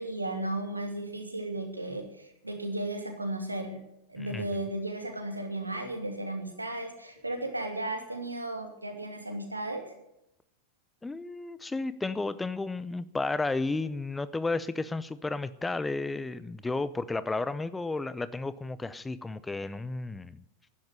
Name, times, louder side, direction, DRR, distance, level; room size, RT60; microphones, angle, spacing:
voice 1, 0.0-3.8 4.1-9.8, right 1 dB, 85° right, 4 dB, 2.7 m, -35 dB
voice 2, 11.0-20.4, left 3 dB, 10° left, 16 dB, 0.6 m, -33 dB
12.0 x 10.5 x 9.9 m, 0.83 s
figure-of-eight pair, 90°, 0 cm